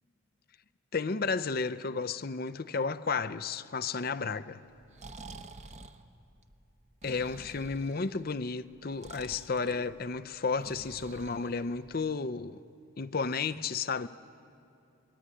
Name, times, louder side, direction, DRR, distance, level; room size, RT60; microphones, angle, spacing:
voice 1, 0.9-4.6 7.0-12.6 13.0-14.1, left 4 dB, 45° left, 0.6 m, -32 dB
Breathing, 4.7-12.1, right 2 dB, 35° right, 0.9 m, -50 dB
24.0 x 21.5 x 9.7 m
head